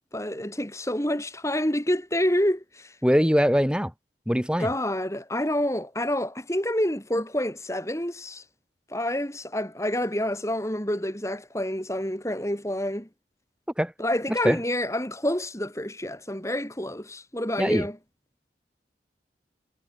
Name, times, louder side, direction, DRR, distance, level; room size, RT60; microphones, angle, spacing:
voice 1, 0.1-2.9 4.6-8.4 8.9-13.1 14.0-18.0, left 1 dB, 15° left, 5.1 m, -28 dB
voice 2, 3.0-3.9 4.3-4.7 13.8-13.9 14.4-14.6 17.6-17.9, equal, 5° right, 4.9 m, -22 dB
head